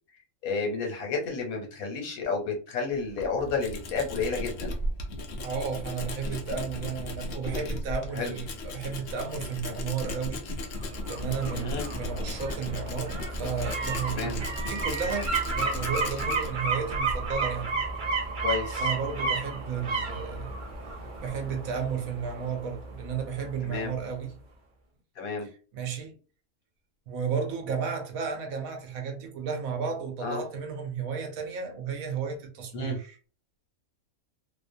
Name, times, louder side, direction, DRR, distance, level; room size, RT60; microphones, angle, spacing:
voice 1, 0.4-4.7 8.1-8.4 11.5-11.9 14.1-14.4 18.4-18.9 23.6-24.0 25.2-25.5 30.2-30.4 32.7-33.0, left 4 dB, 90° left, 1.3 m, -31 dB
Tools, 2.9-18.3, left 1 dB, 60° left, 0.7 m, -36 dB
voice 2, 5.4-10.4 11.1-17.8 18.8-20.6 21.2-24.4 25.7-26.1 27.1-33.1, right 6 dB, 80° right, 1.1 m, -33 dB
sound 1, 10.8-23.6 23.9-24.0, right 3 dB, 45° right, 0.7 m, -32 dB
2.7 x 2.0 x 2.5 m
omnidirectional pair, 1.4 m